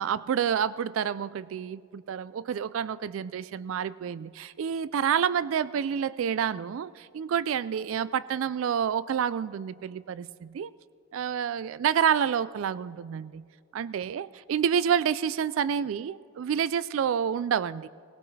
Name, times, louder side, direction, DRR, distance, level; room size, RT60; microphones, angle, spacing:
voice 1, 0.0-10.7 11.1-13.4 13.7-17.9, right 8 dB, 75° right, 18 dB, 0.3 m, -28 dB
20.0 x 16.5 x 3.3 m, 2.3 s
head